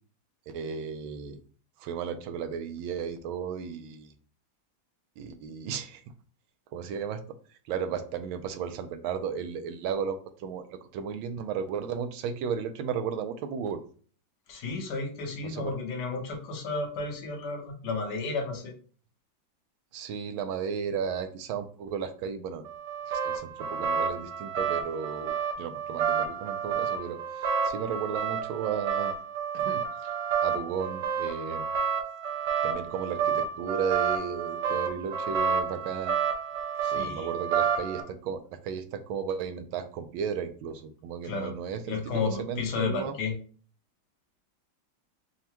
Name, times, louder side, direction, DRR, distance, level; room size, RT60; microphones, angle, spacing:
voice 1, 0.5-1.4 1.8-4.1 5.2-6.0 6.7-7.2 7.7-13.8 15.4-15.8 19.9-22.7 23.1-29.1 29.5-30.1 30.4-31.6 32.6-36.2 36.9-43.2, right 7 dB, 85° right, 8 dB, 1.4 m, -34 dB
voice 2, 14.5-18.7 36.8-37.3 41.2-41.5 41.9-43.3, left 4 dB, 65° left, 3 dB, 1.4 m, -32 dB
sound 1, 22.7-38.0, right 7 dB, 70° right, 1.2 m, -30 dB
5.5 x 2.2 x 2.9 m, 0.42 s
omnidirectional pair, 2.2 m